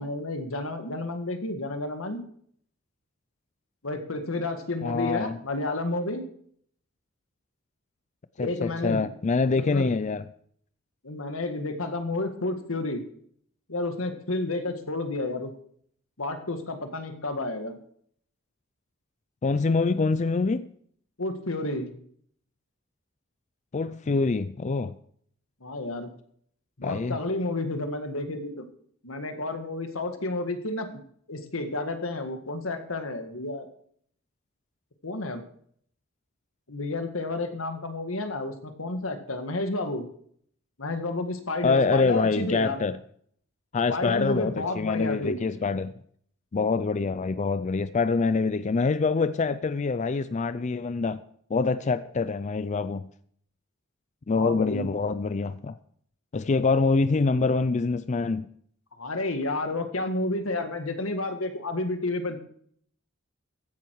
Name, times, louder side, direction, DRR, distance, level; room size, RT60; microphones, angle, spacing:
voice 1, 0.0-2.2 3.8-6.3 8.4-9.0 9.5-9.9 11.0-13.0 13.7-15.5 16.2-17.8 21.2-21.9 25.6-26.1 26.8-28.6 29.0-31.0 31.3-33.7 35.0-35.4 36.7-40.1 40.8-42.8 43.9-45.4 54.3-54.9 59.0-62.4, left 2 dB, 90° left, 1.8 m, -31 dB
voice 2, 4.8-5.4 8.4-10.2 19.4-20.7 23.7-24.9 26.8-27.2 41.6-43.0 43.7-45.9 46.5-51.2 51.5-53.1 54.3-55.7 56.3-58.5, left 4 dB, 35° left, 0.4 m, -25 dB
14.5 x 10.5 x 4.7 m
head